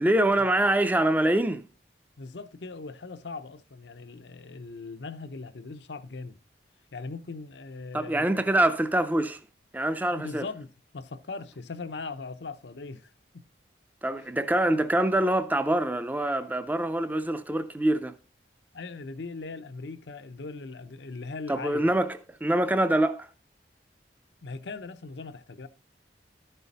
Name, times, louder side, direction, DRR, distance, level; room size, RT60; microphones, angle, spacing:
voice 1, 0.0-1.6 7.9-9.4 9.7-10.5 14.0-18.1 21.5-23.3, right 1 dB, 10° right, 0.4 m, -25 dB
voice 2, 2.2-6.4 6.9-8.4 10.1-10.7 10.9-13.5 14.2-14.3 18.7-21.9 24.4-25.7, left 3 dB, 75° left, 0.7 m, -39 dB
12.0 x 5.6 x 4.1 m
head